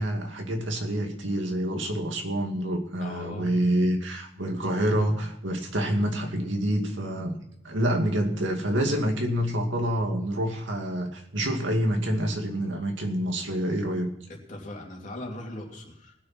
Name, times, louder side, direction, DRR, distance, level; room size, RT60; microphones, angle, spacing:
voice 1, 0.0-7.4 7.6-14.1, equal, 80° right, 3 dB, 2.3 m, -27 dB
voice 2, 3.0-3.6 14.3-16.1, left 1 dB, 40° left, 0 dB, 2.8 m, -39 dB
20.0 x 6.8 x 5.9 m, 0.72 s
head